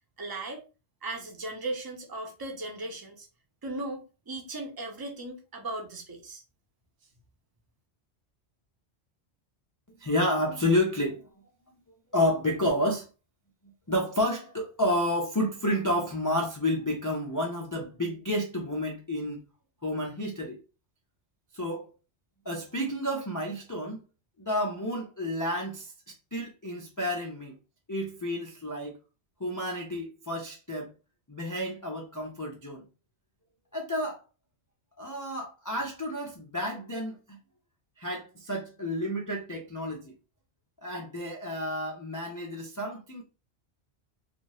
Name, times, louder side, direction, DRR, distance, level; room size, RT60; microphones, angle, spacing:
voice 1, 0.2-0.7 1.0-3.3 3.6-6.4, right 2 dB, 25° right, 0.6 m, -37 dB
voice 2, 10.0-11.2 12.1-13.1 13.9-19.4 19.8-20.6 21.5-21.9 22.4-24.0 24.5-27.5 27.9-29.0 29.4-30.9 31.3-32.8 33.7-34.2 35.0-37.4 38.0-40.1 40.8-43.2, left 1 dB, 30° left, 0.3 m, -30 dB
2.7 x 2.5 x 3.0 m
omnidirectional pair, 1.1 m